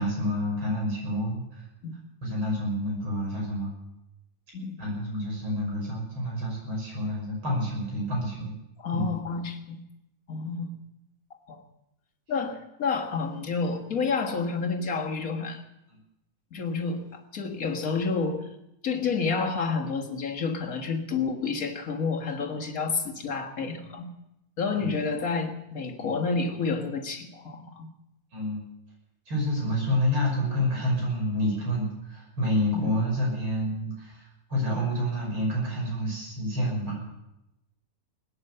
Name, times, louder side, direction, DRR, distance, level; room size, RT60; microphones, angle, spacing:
voice 1, 0.0-1.6 2.2-3.7 4.8-8.5 8.9-9.1 24.8-24.9 26.0-26.1 28.3-28.6 29.3-37.0, equal, 85° right, -2 dB, 7.0 m, -28 dB
voice 2, 8.8-9.8 10.3-10.7 11.5-11.6 12.3-15.6 16.5-18.5 18.8-24.1 24.6-27.9 32.7-32.9, left 4 dB, 45° left, 2 dB, 1.9 m, -29 dB
20.0 x 9.7 x 6.7 m, 0.89 s
omnidirectional pair, 2.2 m